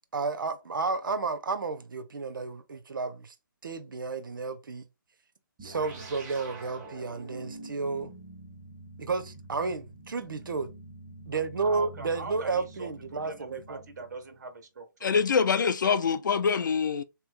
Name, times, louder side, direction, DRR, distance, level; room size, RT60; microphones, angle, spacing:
voice 1, 0.1-3.4 3.6-4.9 5.6-8.1 9.0-10.7 11.3-13.8, right 4 dB, 75° right, 0.7 m, -32 dB
sound 1, 5.6-14.4, right 2 dB, 20° right, 0.9 m, -46 dB
voice 2, 11.6-15.1, right 3 dB, 55° right, 1.3 m, -43 dB
voice 3, 15.0-17.0, left 6 dB, 65° left, 0.5 m, -25 dB
3.5 x 3.0 x 3.4 m
hypercardioid pair, 155°, 11 cm